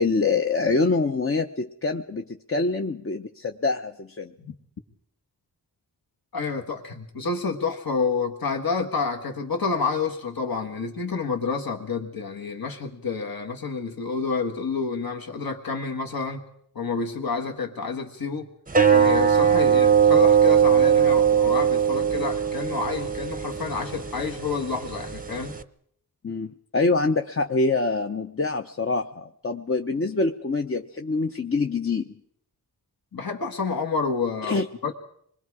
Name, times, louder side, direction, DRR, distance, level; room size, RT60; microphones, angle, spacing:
voice 1, 0.0-4.3 26.2-32.1 34.5-34.7, left 3 dB, 35° left, 5 dB, 0.7 m, -25 dB
voice 2, 6.3-16.4 16.7-18.5 18.9-25.5 33.1-34.9, left 4 dB, 60° left, 2 dB, 1.7 m, -29 dB
sound 1, 18.7-25.6, right 8 dB, 20° right, 0.7 m, -20 dB
26.0 x 21.0 x 4.8 m, 0.68 s
wide cardioid pair, 75°, 39 cm